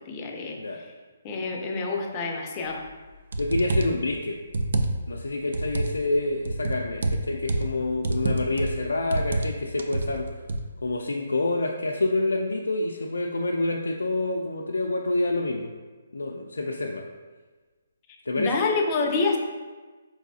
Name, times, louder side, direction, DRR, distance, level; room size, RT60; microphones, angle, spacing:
voice 1, 0.1-0.6 1.2-2.9 18.4-19.4, left 4 dB, 25° left, 2 dB, 0.5 m, -27 dB
sound 1, 2.8-2.9 3.3-4.0 4.5-5.2 5.5-6.0 6.5-7.7 8.0-8.8 9.1-9.5 9.8-10.7, right 2 dB, 70° right, 0.4 m, -27 dB
voice 2, 3.4-4.4 5.1-10.4 10.8-15.7 16.1-17.0 18.3-18.7, left 2 dB, 85° left, 0 dB, 0.3 m, -27 dB
4.5 x 3.1 x 2.7 m, 1.3 s
hypercardioid pair, 150°, 0 cm